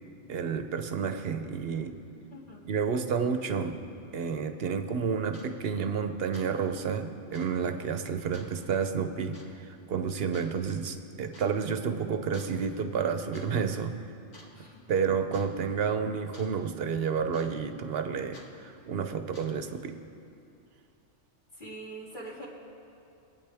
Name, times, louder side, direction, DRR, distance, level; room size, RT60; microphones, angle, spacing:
voice 1, 0.3-1.9 2.7-3.8 4.1-13.9 14.9-19.9, right 6 dB, 60° right, 8 dB, 0.9 m, -30 dB
voice 2, 2.3-2.6 14.5-14.8 21.6-22.5, right 2 dB, 40° left, -5 dB, 2.3 m, -43 dB
sound 1, 5.3-5.5 5.9-6.1 6.3-6.5 6.8-6.9 7.3-7.6 8.3-8.6 9.3-9.5 10.3-10.5 11.3-11.5 12.3-12.6 13.1-13.5 13.8-14.0 14.3-14.8 15.3-15.5 16.3-16.5 17.3-17.7 18.3-18.5 19.2-19.7, left 1 dB, 80° left, 2.2 m, -52 dB
22.5 x 8.7 x 3.4 m, 2.6 s
omnidirectional pair, 1.2 m